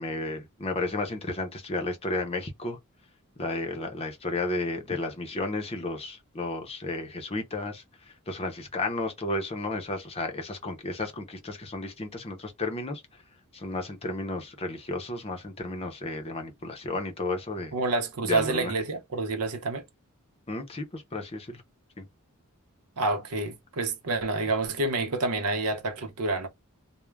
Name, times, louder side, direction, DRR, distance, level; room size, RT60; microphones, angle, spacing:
voice 1, 0.0-2.8 3.4-13.0 13.5-17.7 18.2-18.7 20.5-21.6 22.0-22.1, left 2 dB, 25° left, 0.6 m, -33 dB
voice 2, 17.7-19.8 23.0-26.5, right 3 dB, 85° right, 0.7 m, -28 dB
2.3 x 2.1 x 3.1 m
head